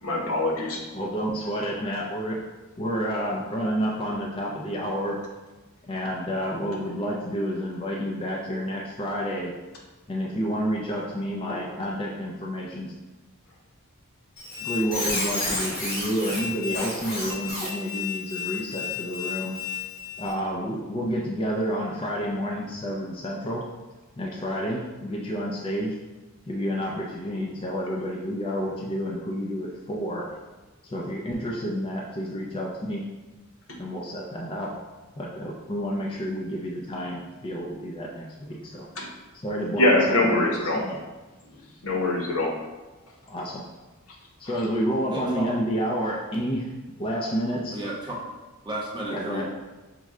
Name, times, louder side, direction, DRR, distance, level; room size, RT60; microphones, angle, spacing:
voice 1, 0.0-0.8 33.7-33.8 39.0-39.1 39.8-40.8 41.8-42.5, left 1 dB, 90° left, -1 dB, 0.9 m, -23 dB
voice 2, 0.9-2.4 2.8-5.2 5.8-9.5 10.1-13.0 14.6-19.6 20.2-23.6 24.2-26.0 26.5-30.3 30.8-33.1 33.8-34.8 35.2-38.9 39.3-40.3 40.7-41.0 43.3-43.6 44.4-46.7 47.0-47.8 49.1-49.4, equal, 25° left, -2 dB, 0.4 m, -29 dB
Squeak, 14.4-20.3, left 4 dB, 45° left, 0.9 m, -32 dB
voice 3, 45.1-45.6 47.7-48.2 48.6-49.4, right 1 dB, 20° right, -3 dB, 0.8 m, -32 dB
5.9 x 2.1 x 3.6 m, 1.2 s
head